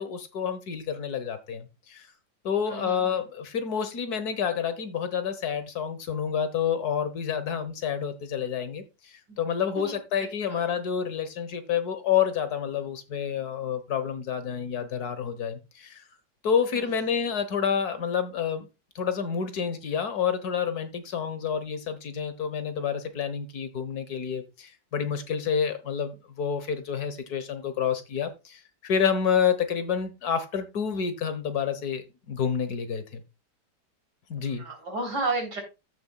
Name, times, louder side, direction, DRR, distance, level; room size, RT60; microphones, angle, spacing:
voice 1, 0.0-2.1 2.4-16.0 16.4-18.7 19.0-33.2 34.3-34.6, left 7 dB, 65° left, 1.7 m, -29 dB
voice 2, 2.6-3.2 9.3-9.4 9.8-10.0 10.5-10.7 16.7-16.9 34.6-35.6, right 3 dB, 80° right, 4.1 m, -32 dB
14.0 x 6.9 x 2.3 m
omnidirectional pair, 1.8 m